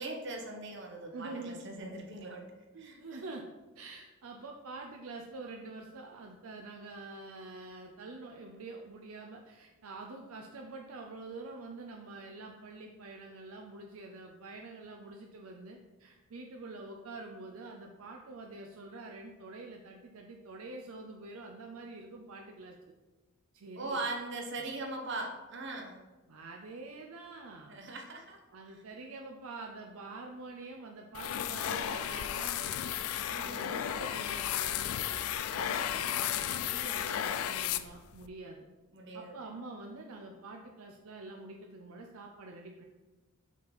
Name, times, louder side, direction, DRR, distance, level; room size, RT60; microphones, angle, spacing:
voice 1, 0.0-2.5 2.8-3.2 23.8-25.9 27.7-28.4 33.2-33.8 38.9-39.3, right 2 dB, 55° right, 2 dB, 1.0 m, -40 dB
voice 2, 1.1-1.6 2.7-3.5 3.8-22.9 23.5-24.0 26.3-27.8 28.5-32.8 33.3-38.7 39.1-42.8, right 3 dB, 80° right, 1 dB, 0.5 m, -46 dB
sound 1, 31.1-38.3, left 10 dB, 80° left, 0.3 m, -34 dB
6.0 x 4.3 x 4.0 m, 1.2 s
head